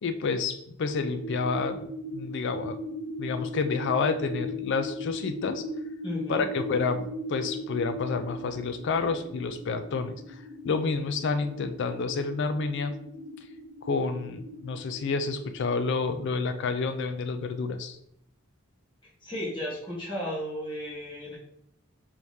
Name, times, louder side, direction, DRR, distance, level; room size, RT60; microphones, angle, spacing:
voice 1, 0.0-2.8 3.2-5.7 6.3-12.9 13.8-18.0, left 4 dB, 55° left, 9 dB, 0.4 m, -29 dB
sound 1, 0.9-15.9, left 1 dB, 80° right, 0.9 m, -38 dB
voice 2, 6.0-6.5 19.2-21.3, equal, 25° left, -7 dB, 1.2 m, -34 dB
4.6 x 3.5 x 2.7 m, 0.74 s
head